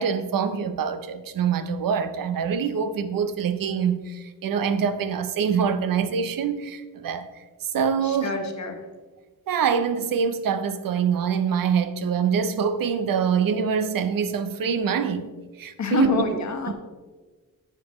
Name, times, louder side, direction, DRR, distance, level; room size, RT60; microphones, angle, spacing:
voice 1, 0.0-7.3 7.6-8.4 9.5-15.3 15.6-16.2, right 6 dB, 75° right, 0.7 m, -25 dB
voice 2, 8.0-8.8 15.8-16.7, left 3 dB, 55° left, 1.2 m, -27 dB
9.9 x 7.4 x 3.1 m
wide cardioid pair, 130°, 35 cm